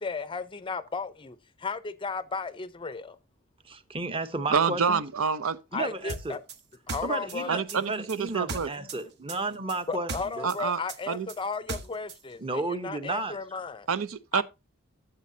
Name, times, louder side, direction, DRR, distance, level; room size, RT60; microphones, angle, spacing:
voice 1, 0.0-3.2 5.7-6.4 6.9-7.6 9.9-13.9 14.3-14.4, left 4 dB, 25° left, 0.5 m, -35 dB
voice 2, 3.6-5.0 5.7-6.4 7.0-10.5 12.4-13.4, right 2 dB, 25° right, 0.8 m, -33 dB
voice 3, 4.5-5.6 7.5-8.7 10.4-10.8 11.1-11.3 13.9-14.4, right 6 dB, 75° right, 0.6 m, -27 dB
sound 1, 6.1-9.0 9.3-12.2, right 3 dB, 55° right, 1.0 m, -37 dB
12.5 x 7.5 x 2.7 m
head